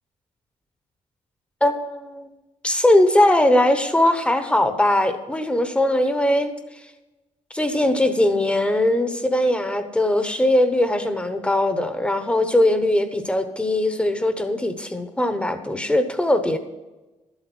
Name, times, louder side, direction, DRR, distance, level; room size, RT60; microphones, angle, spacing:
voice 1, 1.6-2.3 2.6-6.5 7.5-16.6, left 1 dB, 10° left, 8 dB, 1.0 m, -20 dB
12.5 x 8.2 x 6.1 m, 1.1 s
wide cardioid pair, 155°, 13 cm